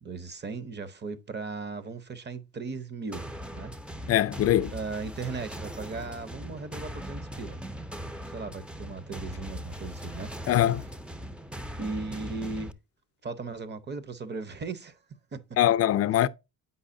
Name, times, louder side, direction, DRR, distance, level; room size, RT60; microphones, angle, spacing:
voice 1, 0.0-3.3 3.5-3.7 4.7-7.6 8.3-10.3 11.8-12.7 13.2-15.0 15.3-15.4 16.1-16.2, right 4 dB, 35° right, 0.8 m, -37 dB
sound 1, 3.1-12.7, equal, 5° right, 0.5 m, -40 dB
voice 2, 4.1-4.7 10.5-10.8 15.6-16.3, left 12 dB, 50° left, 0.5 m, -22 dB
8.2 x 5.5 x 2.6 m
cardioid pair, 90°, 30 cm